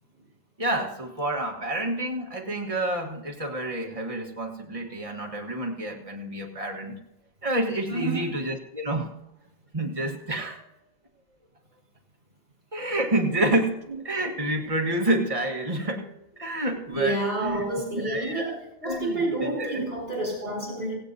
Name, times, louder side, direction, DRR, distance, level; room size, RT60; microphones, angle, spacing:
voice 1, 0.6-7.0 7.4-9.1 9.7-10.7 12.7-16.1 16.4-17.6 17.9-19.9, right 1 dB, 35° right, 1 dB, 1.5 m, -29 dB
voice 2, 7.9-8.4 16.9-21.0, right 2 dB, 75° right, -2 dB, 4.9 m, -29 dB
17.0 x 16.0 x 2.7 m, 0.90 s
omnidirectional pair, 1.0 m